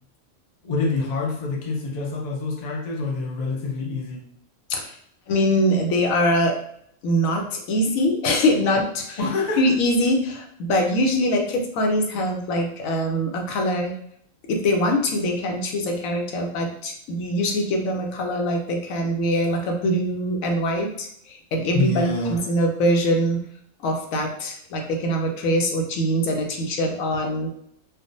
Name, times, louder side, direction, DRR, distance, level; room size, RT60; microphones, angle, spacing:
voice 1, 0.6-4.2 9.2-9.7 21.7-22.4, left 3 dB, 50° left, 0 dB, 0.5 m, -26 dB
voice 2, 5.3-6.6 7.0-9.2 9.6-13.9 14.5-23.4 23.8-27.5, equal, 80° left, 2 dB, 1.0 m, -23 dB
3.5 x 2.1 x 2.5 m, 0.69 s
omnidirectional pair, 1.4 m